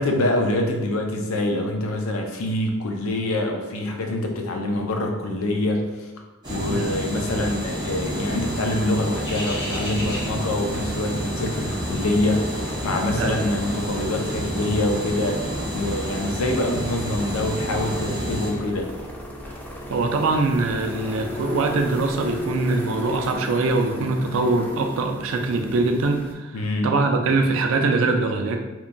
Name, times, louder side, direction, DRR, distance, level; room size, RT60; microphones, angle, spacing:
voice 1, 0.0-6.1 6.5-15.4 15.7-18.9 26.5-26.9, left 1 dB, 80° left, 2 dB, 0.5 m, -25 dB
sound 1, 6.4-18.5, equal, 20° right, 0.7 m, -30 dB
sound 2, 8.0-26.3, left 1 dB, 10° left, 0.3 m, -36 dB
sound 3, 9.2-13.4 13.6-13.9, left 1 dB, 55° left, 1.0 m, -36 dB
voice 2, 19.9-28.6, right 3 dB, 70° right, 4 dB, 0.3 m, -23 dB
2.9 x 2.2 x 2.5 m, 1.1 s
head